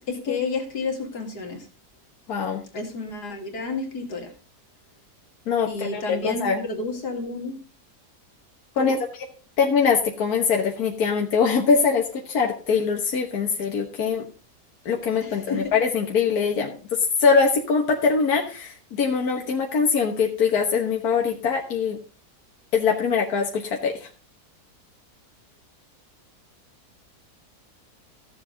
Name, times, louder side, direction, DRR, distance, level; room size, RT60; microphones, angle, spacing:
voice 1, 0.1-1.7 2.7-4.3 5.7-7.6 8.8-9.0 15.2-15.7, left 3 dB, 85° left, 3 dB, 2.8 m, -30 dB
voice 2, 2.3-2.6 5.5-6.6 8.8-9.0 9.6-14.3 14.9-16.7 17.2-22.0 22.7-24.1, left 5 dB, 65° left, 1 dB, 1.8 m, -22 dB
14.5 x 7.3 x 3.8 m, 0.37 s
omnidirectional pair, 1.7 m